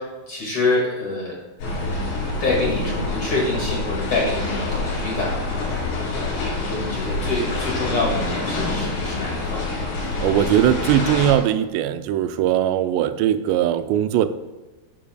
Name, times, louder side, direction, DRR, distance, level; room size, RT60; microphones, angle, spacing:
voice 1, 0.0-1.3 2.4-9.8, left 2 dB, 45° left, -4 dB, 2.5 m, -26 dB
sound 1, 1.6-11.4, left 2 dB, 90° left, 5.6 m, -26 dB
voice 2, 10.2-14.3, right 11 dB, 85° right, 10 dB, 2.7 m, -20 dB
11.5 x 10.0 x 2.3 m, 1.1 s
omnidirectional pair, 4.9 m